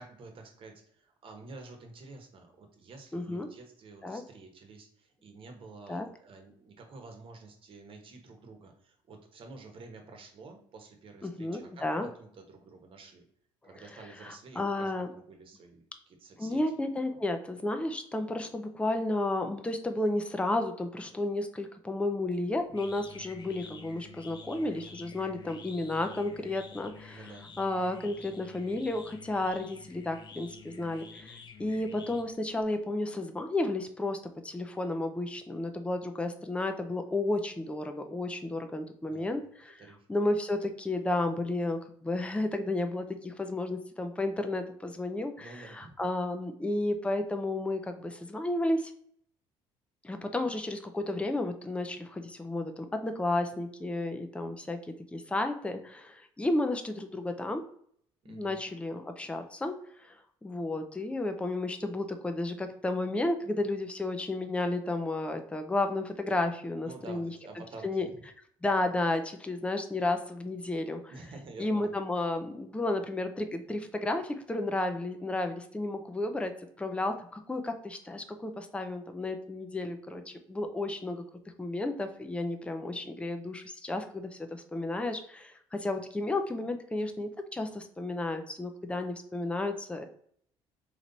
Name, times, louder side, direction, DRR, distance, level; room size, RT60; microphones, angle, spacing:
voice 1, 0.0-13.2 13.6-16.6 17.1-17.2 27.1-27.5 39.0-39.4 39.8-40.1 45.4-46.0 58.2-58.6 66.8-68.2 71.1-72.0, right 3 dB, 50° right, 4 dB, 1.2 m, -50 dB
voice 2, 3.1-3.5 4.0-4.2 5.9-6.1 11.2-12.1 14.2-15.1 16.4-27.3 27.6-39.8 40.1-48.9 50.0-54.8 55.1-57.6 58.3-59.7 60.0-67.3 67.8-68.1 68.6-71.1 71.6-76.5 76.8-81.2 81.6-90.0, left 2 dB, 10° left, 6 dB, 0.6 m, -32 dB
sound 1, 22.3-32.6, left 5 dB, 40° left, 0.8 m, -50 dB
3.9 x 3.1 x 4.0 m, 0.63 s
supercardioid pair, 80°, 12 cm